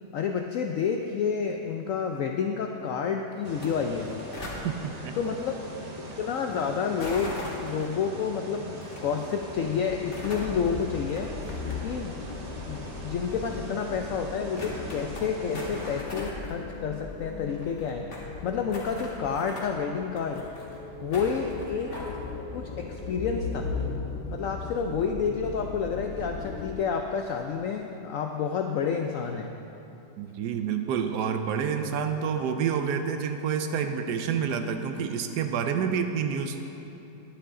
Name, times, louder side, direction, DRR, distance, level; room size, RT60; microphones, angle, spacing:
voice 1, 0.1-4.1 5.2-5.6 6.0-11.3 11.8-12.1 12.7-18.0 18.4-20.5 21.0-22.0 22.5-23.7 24.3-29.5, left 6 dB, 80° left, 3 dB, 0.7 m, -29 dB
sound 1, 3.4-16.0, right 1 dB, 50° right, 0.4 m, -42 dB
sound 2, 3.5-3.7 3.9-4.6 7.0-7.8 8.8-9.0 9.9-10.5 11.0-12.0 12.3-12.4 13.2-13.3 13.8-13.9 14.1-14.2 14.6-15.2 15.5-16.5 16.8-16.9 17.1-17.2 17.3-18.3 18.7-19.7 20.1-20.8 21.1-22.2, left 1 dB, 45° left, 1.8 m, -40 dB
sound 3, 9.5-26.7, left 4 dB, 60° left, 1.1 m, -38 dB
voice 2, 30.2-36.6, right 7 dB, 75° right, 7 dB, 1.1 m, -28 dB
10.0 x 9.7 x 3.7 m, 2.9 s
omnidirectional pair, 1.9 m